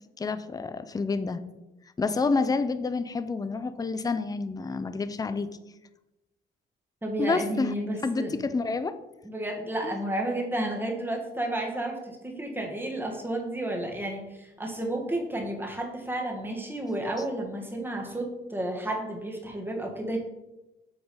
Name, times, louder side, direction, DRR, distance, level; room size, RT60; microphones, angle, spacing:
voice 1, 0.2-1.4 2.0-5.5 7.2-7.7 8.0-9.0 9.8-10.0, left 4 dB, 20° left, 12 dB, 0.5 m, -28 dB
voice 2, 7.0-8.4 9.2-20.2, right 1 dB, 10° right, 1 dB, 1.7 m, -32 dB
7.9 x 3.9 x 5.4 m, 0.98 s
cardioid pair, 90°, 20 cm